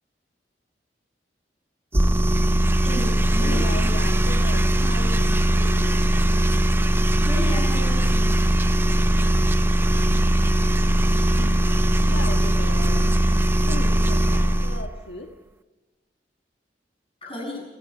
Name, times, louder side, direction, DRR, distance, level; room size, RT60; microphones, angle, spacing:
sound 1, 1.9-14.9, right 1 dB, 15° right, 0.6 m, -20 dB
voice 1, 2.8-4.0 7.2-8.4 17.2-17.6, left 1 dB, 30° left, 1 dB, 7.7 m, -33 dB
voice 2, 3.4-6.3 11.3-13.1 13.7-15.3, left 2 dB, 75° left, 3 dB, 1.7 m, -36 dB
29.0 x 17.5 x 5.7 m, 1.2 s
head